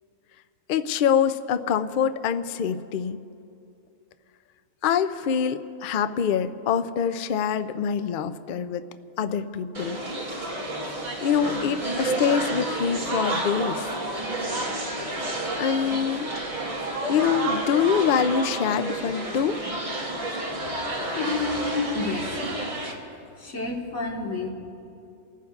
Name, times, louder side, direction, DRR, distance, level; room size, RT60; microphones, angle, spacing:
voice 1, 0.7-3.2 4.8-8.8 9.2-10.0 11.2-13.9 15.6-16.3 17.1-19.6, left 7 dB, 75° left, 11 dB, 0.4 m, -25 dB
sound 1, 9.7-22.9, right 1 dB, 35° right, 1.7 m, -30 dB
voice 2, 21.1-22.6 23.4-24.5, left 3 dB, 55° left, -1 dB, 2.0 m, -29 dB
29.5 x 15.0 x 2.4 m, 2.6 s
omnidirectional pair, 1.4 m